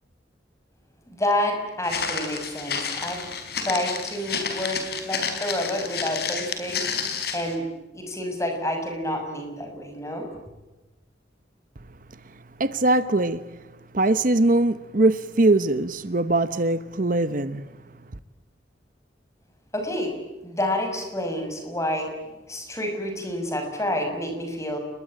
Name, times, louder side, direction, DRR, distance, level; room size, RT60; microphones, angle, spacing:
voice 1, 1.1-3.3 3.5-7.0 7.3-7.7 7.9-10.3 19.7-20.1 20.4-22.1 22.5-24.8, left 1 dB, 15° left, 6.2 m, -29 dB
Walk footsteps, 1.8-7.5, left 6 dB, 60° left, 4.7 m, -30 dB
voice 2, 12.6-13.5 13.9-17.7, right 2 dB, 50° right, 1.0 m, -21 dB
30.0 x 21.5 x 9.0 m
head